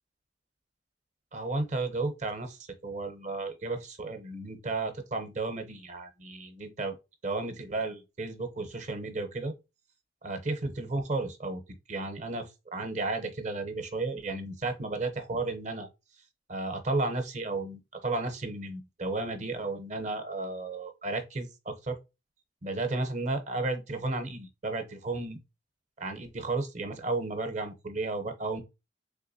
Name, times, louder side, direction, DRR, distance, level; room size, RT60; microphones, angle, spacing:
voice 1, 1.3-7.0 7.2-9.5 10.2-11.6 11.9-15.9 16.5-22.0 22.6-25.4 26.0-28.6, right 2 dB, 40° right, 0.6 m, -33 dB
3.6 x 2.9 x 2.6 m
head